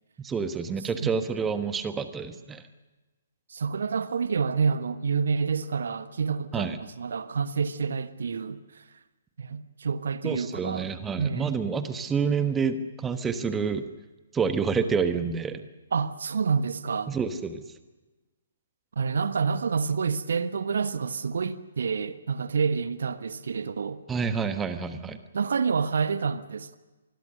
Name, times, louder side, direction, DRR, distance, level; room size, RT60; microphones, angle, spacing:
voice 1, 0.2-2.6 6.5-6.8 10.2-13.9 14.3-15.6 17.1-17.6 24.1-25.2, right 5 dB, 10° right, 1.3 m, -28 dB
voice 2, 3.5-8.8 9.4-10.9 11.2-11.5 15.9-17.1 19.0-24.0 25.3-26.8, right 5 dB, 55° right, 1.2 m, -28 dB
25.5 x 21.0 x 6.7 m
figure-of-eight pair, 130°, 0 cm